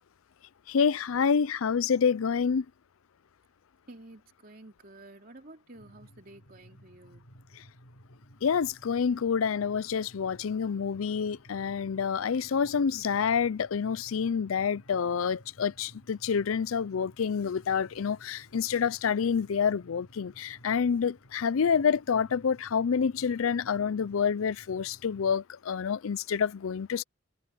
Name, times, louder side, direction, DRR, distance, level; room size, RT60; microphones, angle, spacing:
voice 1, 0.7-2.6 8.4-27.0, left 6 dB, 85° left, 0.5 m, -28 dB
voice 2, 3.9-7.2, right 2 dB, 45° right, 3.0 m, -51 dB
sound 1, 5.7-25.3, equal, 65° left, 3.2 m, -56 dB
head